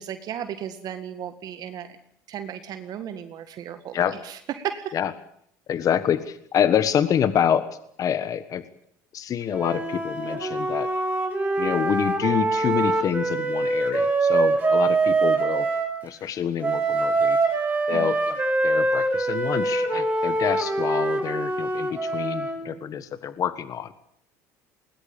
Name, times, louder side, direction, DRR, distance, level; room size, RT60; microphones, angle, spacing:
voice 1, 0.0-2.0 2.3-5.0 17.9-18.1 22.8-23.0, right 9 dB, 55° right, 9 dB, 1.9 m, -35 dB
voice 2, 5.7-7.7 8.0-8.6 9.1-10.9 11.6-15.7 16.0-17.4 17.9-18.4 18.6-24.0, left 9 dB, 45° left, 13 dB, 1.4 m, -26 dB
Wind instrument woodwind instrument, 9.5-15.9 16.6-22.7, right 3 dB, 20° right, 6.9 m, -24 dB
20.0 x 19.5 x 8.8 m, 0.69 s
supercardioid pair, 90°, 8 cm